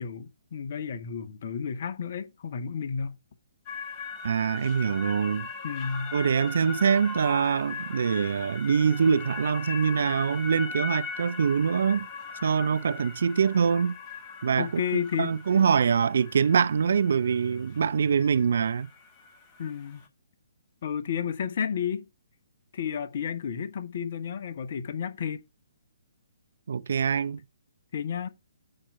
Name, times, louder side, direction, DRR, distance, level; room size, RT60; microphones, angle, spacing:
voice 1, 0.0-3.1 5.6-6.2 14.6-15.3 19.6-20.0 20.8-22.0 22.7-25.4 27.9-28.3, left 7 dB, 45° left, 1.0 m, -32 dB
sound 1, 3.7-20.1, left 4 dB, 25° left, 1.4 m, -40 dB
voice 2, 4.2-5.5 6.1-12.1 12.4-14.0 14.4-18.9 26.7-27.4, right 6 dB, 55° right, 0.6 m, -24 dB
8.8 x 4.5 x 5.4 m
figure-of-eight pair, 130°, 0 cm